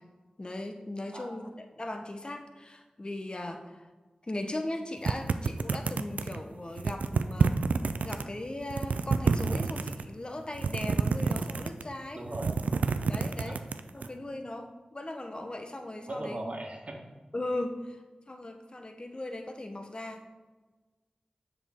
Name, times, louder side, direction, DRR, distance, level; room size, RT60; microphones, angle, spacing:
voice 1, 0.4-3.9 4.3-7.6 8.0-12.2 13.1-13.6 13.9-16.4 17.3-18.0 18.3-20.2, left 1 dB, 40° left, 5 dB, 0.9 m, -38 dB
sound 1, 5.0-6.4 6.8-8.2 8.6-10.0 10.5-11.9 12.2-14.1, right 4 dB, 85° right, 0.3 m, -28 dB
voice 2, 12.1-12.7 13.4-13.6 14.0-14.1 16.1-17.0, right 1 dB, 55° right, 1 dB, 1.4 m, -38 dB
7.3 x 5.9 x 3.6 m, 1.3 s
cardioid pair, 45°, 2 cm